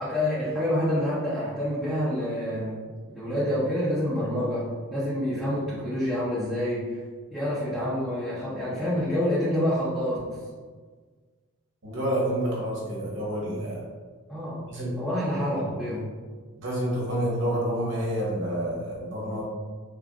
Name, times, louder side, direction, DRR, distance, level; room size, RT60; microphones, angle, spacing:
voice 1, 0.0-2.8 3.1-7.0 7.3-10.4 14.3-14.6 15.0-16.0, left 1 dB, ahead, -12 dB, 0.8 m, -27 dB
voice 2, 11.8-13.8 14.7-14.9 16.6-19.4, right 1 dB, 60° right, -5 dB, 1.2 m, -28 dB
3.7 x 2.6 x 3.5 m, 1.5 s
head